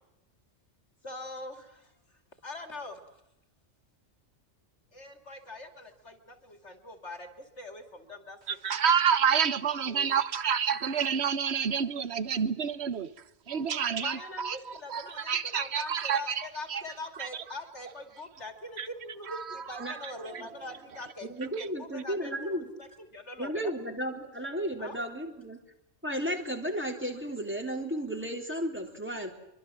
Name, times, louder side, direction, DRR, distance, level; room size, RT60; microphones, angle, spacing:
voice 1, 1.0-1.9 2.4-3.0 4.9-8.4 9.9-10.1 14.0-22.5 22.8-23.7 24.8-25.0, left 2 dB, 65° left, 3.1 m, -43 dB
voice 2, 8.5-13.1 13.5-16.8 17.2-17.4 18.8-18.9 19.2-20.5, right 7 dB, 60° right, 1.4 m, -29 dB
voice 3, 21.2-22.7 23.4-25.6 26.0-29.3, equal, 10° right, 3.8 m, -34 dB
24.5 x 24.0 x 7.7 m
omnidirectional pair, 1.3 m